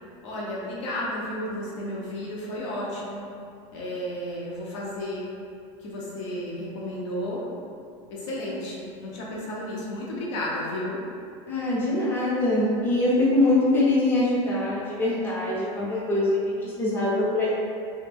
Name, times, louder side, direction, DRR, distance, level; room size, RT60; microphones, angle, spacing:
voice 1, 0.2-3.2 3.7-5.3 5.8-7.4 8.1-11.0, left 1 dB, 75° left, -5 dB, 0.7 m, -32 dB
voice 2, 11.5-17.6, left 2 dB, 15° left, -8 dB, 0.5 m, -23 dB
2.2 x 2.0 x 3.2 m, 2.4 s
supercardioid pair, 140°, 15 cm